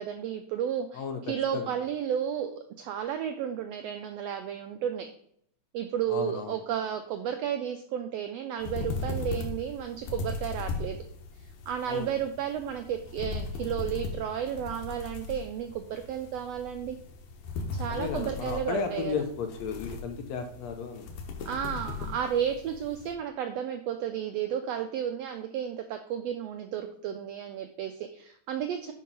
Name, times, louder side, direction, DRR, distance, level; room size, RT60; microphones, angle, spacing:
voice 1, 0.0-5.1 5.7-11.0 11.7-17.0 17.7-19.2 21.4-28.9, right 9 dB, 90° right, 7 dB, 1.4 m, -32 dB
voice 2, 0.9-1.8 6.1-6.6 11.9-12.2 17.9-21.1, left 6 dB, 70° left, 6 dB, 1.7 m, -34 dB
sound 1, 8.6-23.1, left 4 dB, 90° left, 2.5 m, -38 dB
5.5 x 5.3 x 5.4 m, 0.67 s
omnidirectional pair, 3.5 m